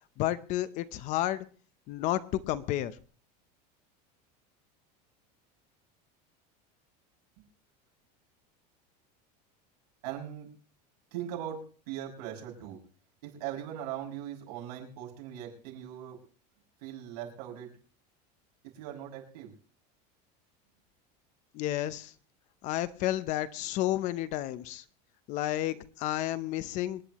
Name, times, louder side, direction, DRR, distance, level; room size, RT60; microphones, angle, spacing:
voice 1, 0.2-1.4 1.9-2.9 21.5-22.1 22.6-24.8 25.3-27.0, left 14 dB, 35° left, 0.7 m, -31 dB
voice 2, 10.0-10.5 11.1-12.8 13.2-16.2 16.8-17.7 18.7-19.5, right 10 dB, 80° right, 6.5 m, -40 dB
26.5 x 10.0 x 3.0 m
supercardioid pair, 175°, 21 cm